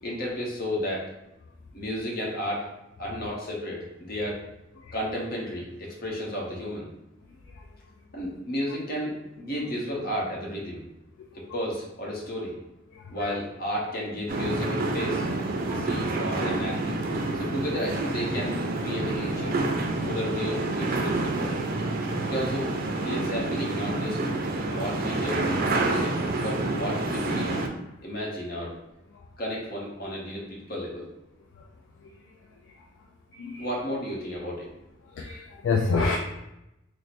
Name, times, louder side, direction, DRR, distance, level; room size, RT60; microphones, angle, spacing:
voice 1, 0.0-1.1 1.7-2.7 3.0-4.4 4.9-6.9 8.1-10.8 11.3-12.5 13.1-15.2 15.7-16.9 17.3-19.6 20.1-21.5 22.2-22.7 23.0-24.2 24.6-25.4 25.8-27.6 28.0-28.7 29.4-31.1 33.6-34.7, equal, 55° left, -3 dB, 1.0 m, -32 dB
sound 1, 14.3-27.7, right 2 dB, 50° right, 0.4 m, -28 dB
voice 2, 35.2-36.2, left 4 dB, 70° left, 1 dB, 0.3 m, -26 dB
3.1 x 2.0 x 4.1 m, 0.90 s
head